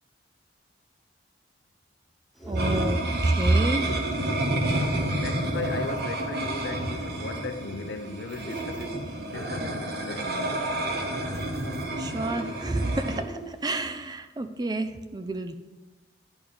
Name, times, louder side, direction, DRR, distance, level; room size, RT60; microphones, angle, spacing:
sound 1, 2.4-14.0, right 3 dB, ahead, 0.9 m, -44 dB
voice 1, 2.5-4.0 12.0-15.6, right 2 dB, 20° right, 0.4 m, -27 dB
sound 2, 2.6-13.2, right 1 dB, 55° right, 1.0 m, -30 dB
voice 2, 4.8-9.0 9.3-10.7, left 3 dB, 80° left, 0.6 m, -37 dB
10.5 x 3.5 x 7.0 m
head